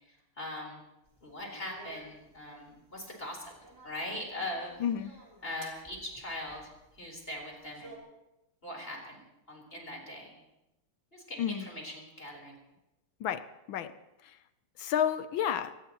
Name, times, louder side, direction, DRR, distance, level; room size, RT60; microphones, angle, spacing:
voice 1, 0.1-0.8 1.2-3.5 3.8-4.8 5.4-8.0 8.6-9.2 9.5-10.4 11.1-12.5, left 1 dB, 25° left, -1 dB, 4.2 m, -41 dB
sound 1, 1.0-8.0, right 1 dB, 10° right, 3.3 m, -55 dB
voice 2, 4.8-5.1 11.4-11.7 13.2-13.9 14.2-14.4 14.8-15.7, left 9 dB, 70° left, 12 dB, 1.4 m, -31 dB
24.5 x 18.5 x 3.0 m, 0.93 s
omnidirectional pair, 2.4 m